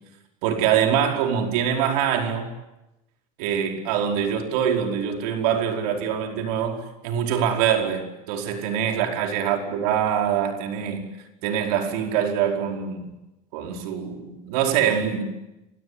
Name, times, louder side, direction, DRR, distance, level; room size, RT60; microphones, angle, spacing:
voice 1, 0.4-2.5 3.4-11.0 11.4-13.1 13.5-15.2, right 8 dB, 85° right, 5.0 m, -24 dB
29.5 x 18.0 x 9.8 m
cardioid pair, 140°, 19 cm